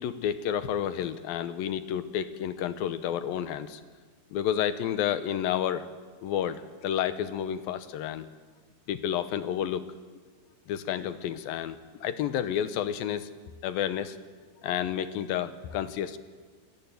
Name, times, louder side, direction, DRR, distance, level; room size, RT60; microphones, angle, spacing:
voice 1, 0.0-3.8 4.3-5.9 6.2-8.3 8.9-9.8 10.7-13.3 13.6-14.2 14.6-16.2, left 10 dB, 75° left, 12 dB, 2.4 m, -30 dB
27.5 x 18.0 x 9.3 m, 1.5 s
omnidirectional pair, 4.7 m